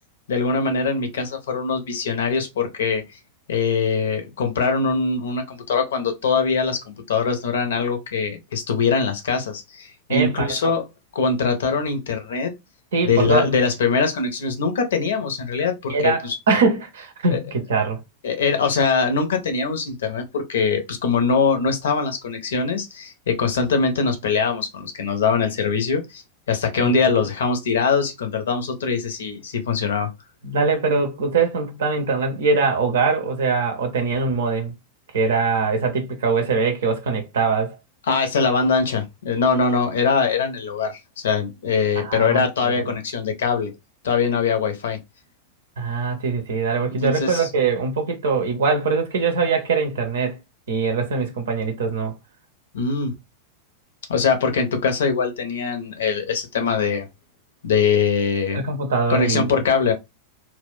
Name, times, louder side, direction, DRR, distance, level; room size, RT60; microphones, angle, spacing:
voice 1, 0.3-3.0 3.5-10.8 11.1-12.5 13.0-16.3 17.3-17.4 18.2-26.2 26.5-30.1 38.1-43.7 44.0-45.0 47.0-47.5 52.7-53.1 54.1-57.1 57.6-58.6 59.1-59.9, left 5 dB, 60° left, 0.7 m, -22 dB
voice 2, 10.1-10.5 12.9-13.5 15.9-16.2 16.5-18.0 26.8-26.9 30.4-34.7 35.1-37.8 42.0-42.9 45.8-50.4 50.7-52.1 58.5-59.6, right 4 dB, 60° right, 0.6 m, -22 dB
2.3 x 2.1 x 3.5 m
figure-of-eight pair, 90°, 0 cm